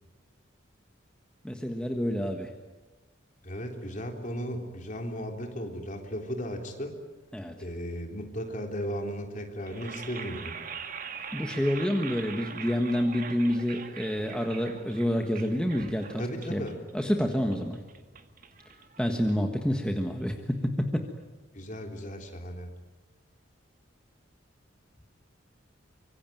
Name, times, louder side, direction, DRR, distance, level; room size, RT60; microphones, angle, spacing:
voice 1, 1.4-2.5 7.3-7.5 11.3-16.2 16.5-16.6 16.9-17.8 19.0-21.0, equal, 5° left, 3 dB, 1.5 m, -28 dB
voice 2, 3.4-7.0 7.6-10.6 16.2-16.8 21.5-22.7, equal, 40° left, 3 dB, 3.6 m, -36 dB
sound 1, 9.6-19.7, right 6 dB, 45° right, 1.9 m, -43 dB
25.0 x 24.0 x 9.3 m, 1.2 s
head